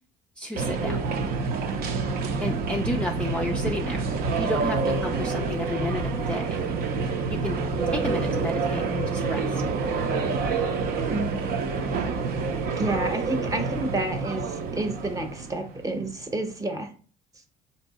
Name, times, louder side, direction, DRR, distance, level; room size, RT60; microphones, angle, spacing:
voice 1, 0.4-1.0 2.4-4.1 4.3-6.6 7.3-9.6, left 1 dB, 5° left, 1 dB, 0.4 m, -32 dB
sound 1, 0.5-16.4, right 4 dB, 60° right, 0.6 m, -28 dB
voice 2, 11.1-11.6 12.8-16.9, right 2 dB, 20° right, 5 dB, 0.8 m, -30 dB
4.4 x 2.7 x 4.1 m, 0.40 s
cardioid pair, 110°, 17 cm